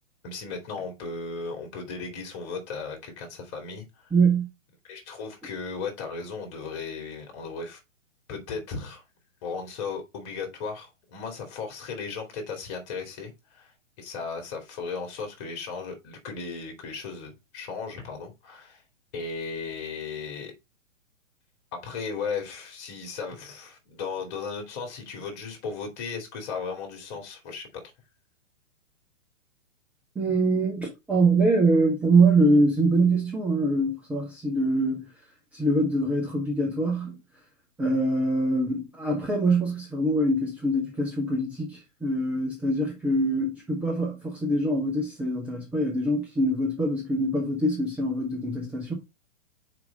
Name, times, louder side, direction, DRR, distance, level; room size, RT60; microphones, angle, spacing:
voice 1, 0.2-4.1 4.9-7.8 8.3-9.0 9.4-13.7 14.0-18.8 19.1-20.5 21.8-27.8, left 5 dB, 30° left, 2.8 m, -36 dB
voice 2, 4.1-4.5 30.2-35.1 35.5-37.2 37.8-48.9, right 2 dB, 5° right, 0.6 m, -24 dB
5.0 x 4.7 x 5.2 m
figure-of-eight pair, 115°, 38 cm